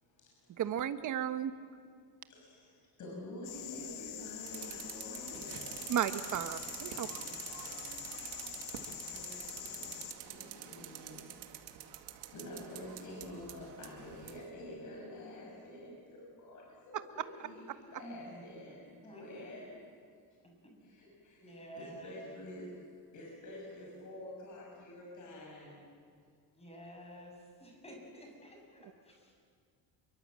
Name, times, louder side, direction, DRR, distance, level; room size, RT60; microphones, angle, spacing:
voice 1, 0.0-0.6 2.3-5.8 9.1-11.2 12.1-19.8 20.8-22.9 23.1-25.8, left 1 dB, 50° left, -2 dB, 6.6 m, -48 dB
voice 2, 0.6-1.5 5.9-7.1, right 10 dB, 50° right, 10 dB, 1.3 m, -34 dB
sound 1, 3.4-10.1, left 11 dB, 75° left, 1.9 m, -45 dB
sound 2, 4.5-14.4, right 11 dB, 85° right, 2.4 m, -47 dB
voice 3, 6.9-8.2 18.0-19.5 20.4-20.8 21.4-22.4 26.5-29.4, right 1 dB, 15° left, 1 dB, 7.2 m, -52 dB
28.0 x 23.5 x 7.7 m, 2.3 s
cardioid pair, 145°, 39 cm